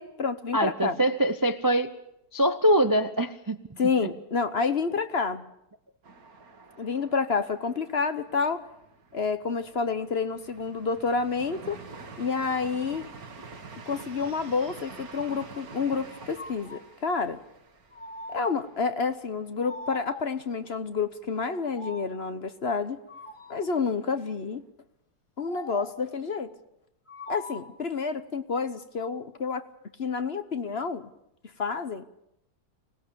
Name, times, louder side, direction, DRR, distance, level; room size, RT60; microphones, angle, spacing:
voice 1, 0.0-1.0 3.8-5.5 6.8-8.7 9.1-11.8 12.2-13.1 13.9-17.4 18.3-23.0 23.5-24.6 25.4-26.5 27.3-29.7 30.0-31.1 31.6-32.1, left 5 dB, 45° left, 1.2 m, -29 dB
voice 2, 0.5-1.9 2.3-3.6, right 1 dB, 20° right, 0.5 m, -23 dB
sound 1, 6.0-19.8 20.1-20.2 20.6-21.1, right 4 dB, 65° right, 2.2 m, -47 dB
sound 2, 16.1-16.9 17.9-18.8 19.6-20.5 21.3-22.2 23.1-23.8 25.4-26.1 27.1-27.9, left 2 dB, 20° left, 1.3 m, -43 dB
25.0 x 19.0 x 6.9 m
omnidirectional pair, 1.7 m